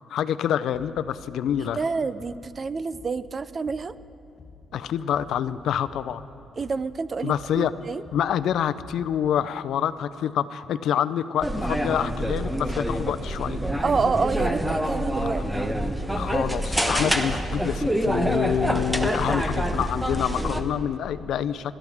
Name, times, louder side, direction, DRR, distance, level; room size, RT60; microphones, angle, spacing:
voice 1, 0.0-1.8 4.7-6.2 7.2-7.8 8.1-13.6 16.1-21.8, left 9 dB, 80° left, 13 dB, 0.6 m, -27 dB
voice 2, 1.8-3.9 6.6-8.0 13.8-15.4, right 4 dB, 40° right, 15 dB, 0.5 m, -28 dB
sound 1, 2.2-2.6 2.9-3.3 3.6-4.0 4.4-4.7 5.1-5.5 5.8-6.2 6.6-6.9 7.3-7.7 8.0-8.4 8.8-9.2, left 4 dB, 55° left, 2.5 m, -48 dB
sound 2, 11.4-20.6, equal, 5° right, 1.2 m, -26 dB
27.0 x 13.5 x 3.6 m, 2.6 s
cardioid pair, 85°, 0 cm